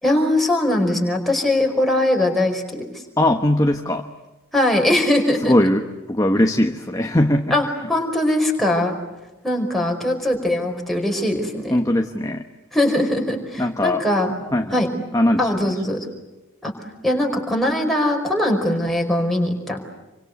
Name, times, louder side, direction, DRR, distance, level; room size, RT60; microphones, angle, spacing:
voice 1, 0.0-2.8 4.5-5.6 7.5-9.0 9.4-11.8 12.7-14.3 14.7-14.9 15.4-16.1 16.6-16.7 17.0-19.8, left 1 dB, ahead, 1 dB, 5.0 m, -21 dB
voice 2, 3.2-4.1 5.4-7.6 11.7-12.5 13.6-14.0 14.5-14.8 15.1-15.7, left 1 dB, 15° left, 5 dB, 1.2 m, -20 dB
29.0 x 25.0 x 8.1 m, 1.1 s
head